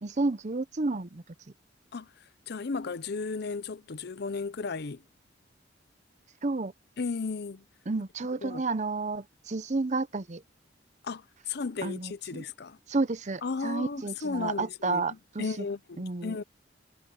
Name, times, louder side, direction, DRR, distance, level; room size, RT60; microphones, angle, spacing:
voice 1, 0.0-1.2 6.4-6.7 7.9-10.4 11.8-12.4 12.9-15.6 16.0-16.4, right 3 dB, 40° right, 0.7 m, -31 dB
voice 2, 2.5-5.0 7.0-7.6 8.4-8.6 11.0-12.8 13.4-16.4, left 4 dB, 60° left, 0.6 m, -35 dB
head